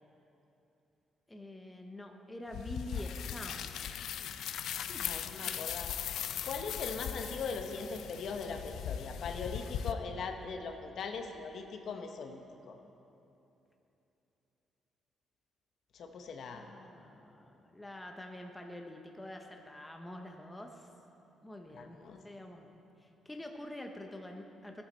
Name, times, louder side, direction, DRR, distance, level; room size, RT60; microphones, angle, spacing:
voice 1, 1.3-3.7 4.9-5.0 5.4-5.6 16.5-20.9 21.4-22.7 23.0-24.8, left 1 dB, 10° left, 3 dB, 0.6 m, -46 dB
sound 1, 2.5-9.9, left 9 dB, 70° left, 0.4 m, -39 dB
voice 2, 5.0-6.0 6.4-12.4 12.7-12.8 15.9-16.6 21.7-22.2, left 5 dB, 50° left, 5 dB, 0.8 m, -40 dB
15.0 x 8.8 x 4.3 m, 2.9 s
cardioid pair, 170°, 0 cm